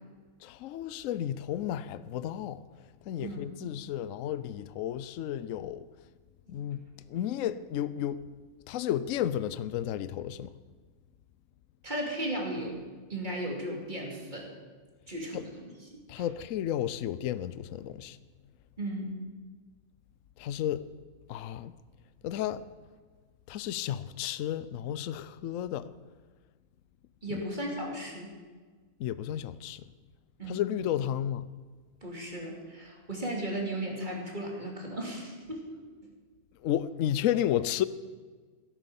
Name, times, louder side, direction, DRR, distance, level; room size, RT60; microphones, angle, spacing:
voice 1, 0.4-2.6 3.1-5.9 6.5-6.8 7.1-8.2 8.7-10.5 15.3-15.4 16.1-18.2 20.4-20.8 21.3-21.7 22.2-22.6 23.5-25.9 27.3-27.5 29.0-29.8 30.5-31.5 36.6-37.9, left 11 dB, 70° left, 0.9 m, -32 dB
voice 2, 11.8-12.8 13.1-14.5 15.1-16.0 18.8-19.1 27.2-28.3 30.4-30.6 32.0-35.8, right 1 dB, 30° right, 3.1 m, -36 dB
15.5 x 9.1 x 7.0 m
omnidirectional pair, 1.5 m